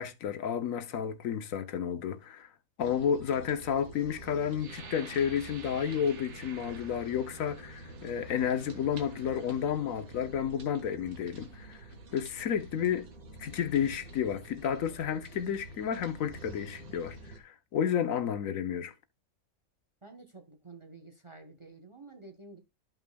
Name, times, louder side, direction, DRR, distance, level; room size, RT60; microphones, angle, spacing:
voice 1, 0.0-2.5 2.8-11.8 12.1-13.1 13.4-18.9, left 8 dB, 70° left, 1.1 m, -31 dB
sound 1, 2.8-17.4, right 2 dB, 80° right, 1.9 m, -48 dB
sound 2, 4.5-10.2 10.9-11.0 11.5-11.9, right 6 dB, 55° right, 1.3 m, -52 dB
voice 2, 20.0-22.6, right 3 dB, 25° right, 0.9 m, -50 dB
13.0 x 5.6 x 2.2 m
omnidirectional pair, 1.5 m